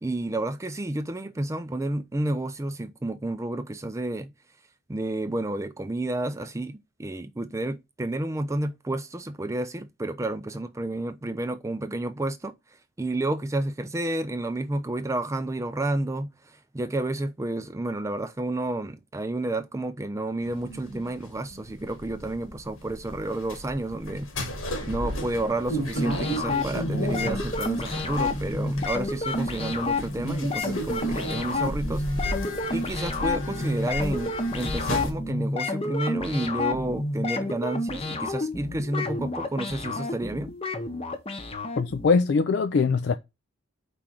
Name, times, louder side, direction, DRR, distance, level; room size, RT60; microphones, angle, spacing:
voice 1, 0.0-4.3 4.9-12.5 13.0-24.3 24.8-32.0 32.3-32.4 32.7-40.5, right 1 dB, 15° right, 0.4 m, -30 dB
sound 1, 20.4-35.1, equal, 85° left, 1.6 m, -34 dB
sound 2, 26.0-42.1, left 2 dB, 30° left, 0.8 m, -30 dB
voice 2, 41.8-43.1, left 4 dB, 55° left, 0.4 m, -22 dB
5.0 x 3.7 x 5.7 m
head